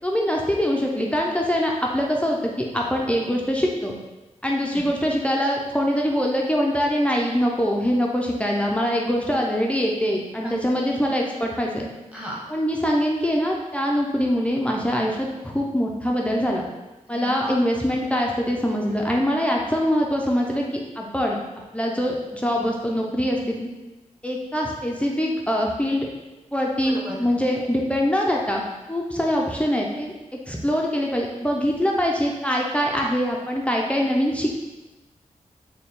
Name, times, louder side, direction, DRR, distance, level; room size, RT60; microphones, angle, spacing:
voice 1, 0.0-3.9 4.4-11.9 12.5-16.6 17.1-21.4 21.7-23.7 24.2-26.1 26.5-28.6 28.9-30.1 30.5-34.5, equal, 10° left, -1 dB, 0.5 m, -23 dB
voice 2, 12.1-12.4 17.1-17.5 26.8-27.3, equal, 10° right, -4 dB, 1.1 m, -35 dB
3.9 x 2.2 x 3.6 m, 1.1 s
cardioid pair, 60°, 13 cm